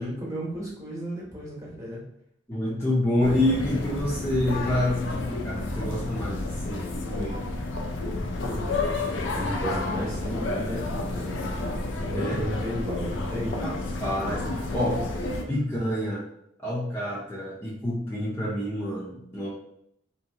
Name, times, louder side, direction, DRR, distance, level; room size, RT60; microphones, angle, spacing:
voice 1, 0.0-2.0 8.4-13.7 14.2-14.5, equal, 20° right, -5 dB, 1.0 m, -34 dB
voice 2, 2.5-7.4 12.1-12.5 13.6-15.1 15.5-16.2 16.6-19.5, left 1 dB, 15° left, -7 dB, 0.6 m, -28 dB
sound 1, 3.2-15.4, left 2 dB, 85° left, 0.5 m, -31 dB
2.8 x 2.8 x 2.7 m, 0.72 s
head